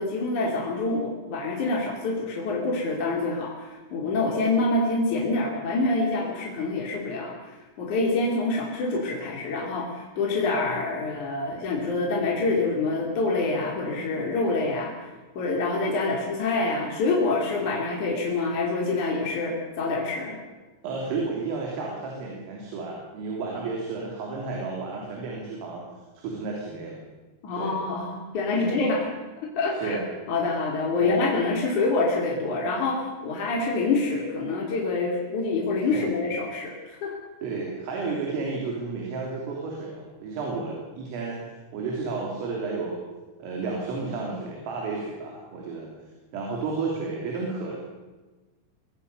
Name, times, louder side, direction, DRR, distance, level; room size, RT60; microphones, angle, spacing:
voice 1, 0.0-15.1 15.4-20.4 27.4-29.1 29.6-30.0 30.3-37.2, left 3 dB, 45° left, -1 dB, 3.9 m, -26 dB
voice 2, 20.8-25.8 26.2-27.0 27.5-27.7 28.6-28.8 29.8-30.1 31.0-31.3 35.9-36.2 37.4-41.4 41.7-43.0 43.4-45.9 46.3-47.8, right 4 dB, 85° right, -1 dB, 5.9 m, -32 dB
24.0 x 18.0 x 6.9 m, 1.2 s
omnidirectional pair, 5.7 m